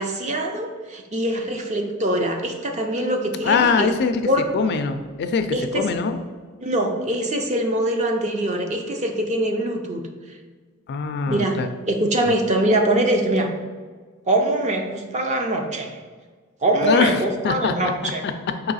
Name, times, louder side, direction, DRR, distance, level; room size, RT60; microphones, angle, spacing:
voice 1, 0.0-3.9 4.2-4.4 5.5-5.8 6.6-10.0 11.3-11.6 11.9-13.5 14.3-16.0 16.6-18.2, right 1 dB, 35° right, 3 dB, 0.5 m, -23 dB
voice 2, 3.4-4.3 4.5-6.2 10.9-11.7 12.2-12.3 16.8-18.3, left 5 dB, 50° left, 8 dB, 0.3 m, -23 dB
4.7 x 2.8 x 4.0 m, 1.5 s
head